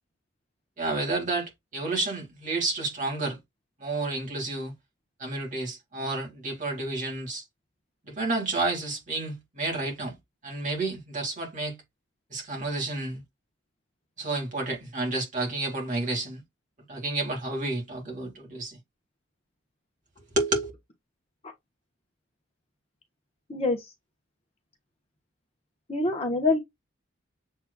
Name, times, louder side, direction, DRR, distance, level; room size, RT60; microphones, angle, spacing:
voice 1, 0.8-3.4 3.8-4.7 5.2-7.4 8.0-10.2 10.4-11.8 12.3-13.2 14.2-16.4 16.9-18.8 20.4-20.7, right 2 dB, 40° right, 2.2 m, -30 dB
voice 2, 25.9-26.6, left 3 dB, 30° left, 1.1 m, -25 dB
7.4 x 3.1 x 2.3 m
head